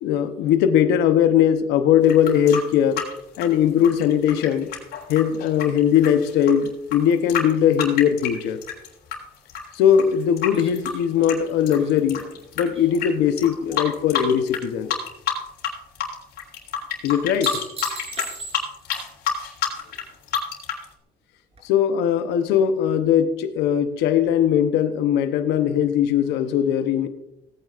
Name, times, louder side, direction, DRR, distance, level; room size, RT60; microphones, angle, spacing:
voice 1, 0.0-3.0 3.4-4.7 5.1-8.6 9.7-12.2 12.6-14.9 17.0-17.6 21.6-27.1, left 9 dB, 90° left, 9 dB, 0.8 m, -20 dB
sound 1, 2.0-9.2 9.5-12.6 12.9-13.1 13.4-14.6 14.9-15.7 16.0-20.8, left 8 dB, 70° left, 3.3 m, -28 dB
sound 2, 10.5-14.0 14.4-15.0 17.1-19.0 21.6-21.7, right 2 dB, 35° right, 3.7 m, -39 dB
17.5 x 9.4 x 2.5 m, 0.86 s
cardioid pair, 110°, 17 cm